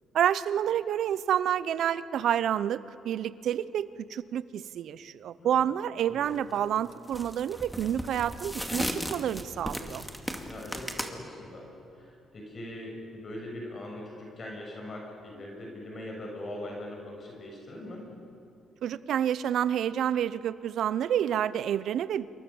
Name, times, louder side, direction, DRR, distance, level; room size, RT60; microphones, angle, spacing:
voice 1, 0.1-10.0 18.8-22.3, right 10 dB, 70° right, 16 dB, 0.8 m, -29 dB
voice 2, 5.4-5.7 6.1-6.4 10.4-18.0, left 1 dB, 40° left, 0 dB, 6.5 m, -41 dB
sound 1, 6.2-6.5 7.1-11.1, equal, ahead, 2.4 m, -35 dB
27.5 x 22.5 x 7.1 m, 2.9 s
cardioid pair, 90°, 0 cm